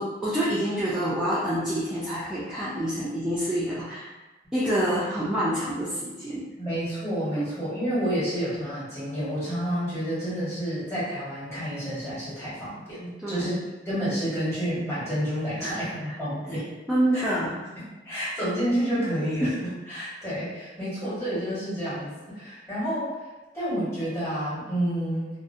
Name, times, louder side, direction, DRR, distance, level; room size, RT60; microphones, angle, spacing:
voice 1, 0.0-4.1 4.5-6.4 7.4-7.5 13.2-13.5 15.6-15.7 16.5-17.6, right 1 dB, 5° right, -11 dB, 0.4 m, -27 dB
voice 2, 6.6-13.6 13.8-16.6 17.1-17.3 17.8-19.5 19.9-23.1 23.5-25.4, equal, 15° left, -12 dB, 1.3 m, -29 dB
2.5 x 2.1 x 2.6 m, 1.2 s
head